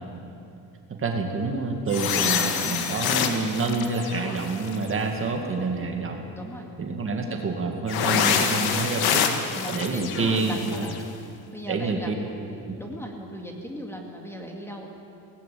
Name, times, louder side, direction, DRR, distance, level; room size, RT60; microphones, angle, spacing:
voice 1, 0.9-6.3 6.8-9.2 9.7-10.9 11.7-12.1, right 3 dB, 35° right, 2 dB, 2.2 m, -27 dB
sound 1, 1.9-5.0 7.9-11.0, left 7 dB, 80° left, 1.8 m, -26 dB
voice 2, 6.3-6.7 8.3-8.8 9.5-11.1 11.5-14.9, equal, 5° left, 1 dB, 2.4 m, -38 dB
18.5 x 16.5 x 8.7 m, 2.7 s
cardioid pair, 125°, 37 cm